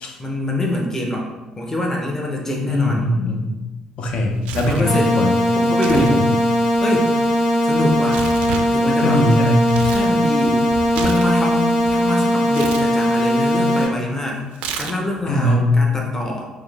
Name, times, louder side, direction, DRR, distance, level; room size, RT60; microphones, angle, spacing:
voice 1, 0.2-3.1 4.6-5.2 5.6-6.2 6.8-7.1 7.6-8.2 8.7-9.3 9.8-10.6 10.9-14.4 14.8-16.5, left 1 dB, 20° left, -1 dB, 0.8 m, -24 dB
voice 2, 2.7-3.5 4.0-4.9 5.2-5.4 5.9-6.3 9.0-9.8 15.3-15.7, left 1 dB, 60° left, 3 dB, 0.6 m, -20 dB
Tearing, 4.1-4.9 5.7-6.2 6.4-10.1 10.5-12.0 12.5-12.9 14.5-15.2, right 6 dB, 75° right, 0.3 m, -31 dB
sound 1, 4.8-13.8, equal, 90° left, 1.0 m, -19 dB
4.6 x 2.0 x 3.3 m, 1.2 s
supercardioid pair, 65°, 2 cm